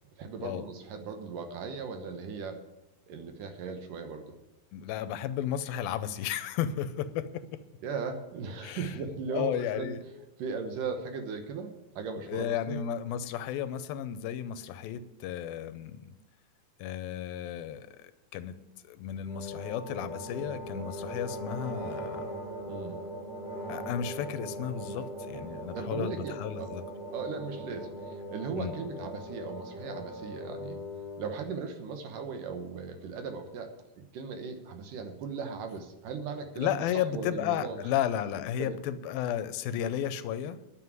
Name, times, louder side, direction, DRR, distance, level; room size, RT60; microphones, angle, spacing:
voice 1, 0.2-2.6 3.1-4.4 7.8-9.9 10.4-12.8 22.6-23.0 25.7-26.7 27.1-30.9 31.2-33.7 34.0-37.8 38.6-38.8, right 5 dB, 70° right, 6 dB, 2.6 m, -37 dB
voice 2, 4.7-7.6 8.6-9.0 9.3-10.2 12.2-16.1 16.8-18.0 18.3-18.6 18.9-22.3 23.7-26.8 28.6-28.7 36.6-40.6, left 10 dB, 90° left, 13 dB, 2.5 m, -33 dB
sound 1, 19.2-31.5, equal, 30° right, 5.5 m, -40 dB
11.0 x 7.3 x 9.5 m, 0.95 s
omnidirectional pair, 4.1 m